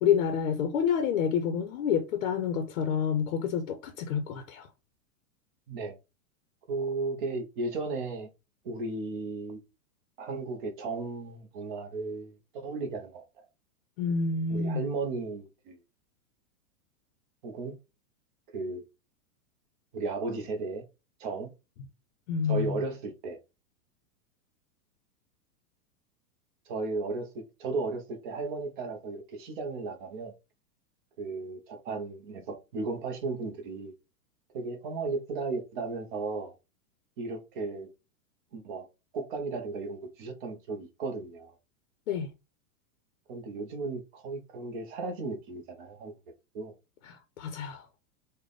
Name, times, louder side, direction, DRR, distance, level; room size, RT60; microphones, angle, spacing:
voice 1, 0.0-4.7 14.0-14.8 22.3-22.8 42.1-42.3 47.0-47.9, left 7 dB, 55° left, 0.6 m, -28 dB
voice 2, 6.7-8.3 8.6-9.6 10.2-13.5 14.5-15.8 17.4-17.8 18.5-18.8 19.9-20.8 21.2-21.5 22.5-23.4 26.7-30.3 31.2-33.9 34.5-36.5 37.2-37.9 38.5-38.9 39.1-41.5 43.3-46.1 46.5-46.7, right 3 dB, 35° right, 0.6 m, -35 dB
3.3 x 2.2 x 3.8 m
supercardioid pair, 165°, 44 cm